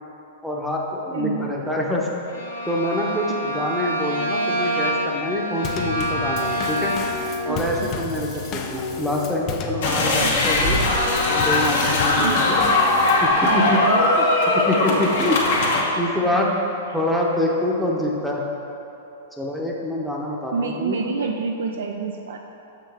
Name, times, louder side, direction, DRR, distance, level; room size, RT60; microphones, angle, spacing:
voice 1, 0.4-2.1 2.7-6.9 7.4-10.8 11.3-12.6 13.2-13.8 14.2-14.3 14.5-15.4 16.0-16.5 16.9-18.4 19.4-21.0, left 1 dB, ahead, -3 dB, 0.8 m, -25 dB
voice 2, 1.1-1.5 3.3-3.4 7.5-8.6 10.0-10.4 12.2-12.4 13.5-14.1 14.8-15.0 20.5-22.4, right 5 dB, 65° right, 3 dB, 0.4 m, -28 dB
Bowed string instrument, 2.3-7.3, equal, 85° left, 1.2 m, -26 dB
Drum kit / Snare drum / Bass drum, 5.6-13.3, left 5 dB, 35° left, 0.6 m, -31 dB
sound 1, 9.8-15.8, left 2 dB, 60° left, 1.2 m, -20 dB
7.1 x 5.6 x 3.5 m, 2.9 s
figure-of-eight pair, 105°, 0 cm